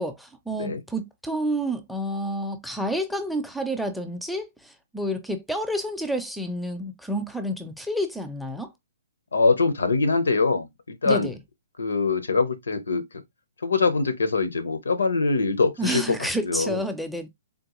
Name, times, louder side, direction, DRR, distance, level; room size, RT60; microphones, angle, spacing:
voice 1, 0.0-8.7 11.0-11.4 15.8-17.3, equal, ahead, 0.4 m, -29 dB
voice 2, 9.3-10.7 11.0-11.3 11.8-13.0 13.6-16.0 16.4-16.8, left 4 dB, 85° left, 0.7 m, -23 dB
3.6 x 2.1 x 2.9 m
hypercardioid pair, 140°, 0 cm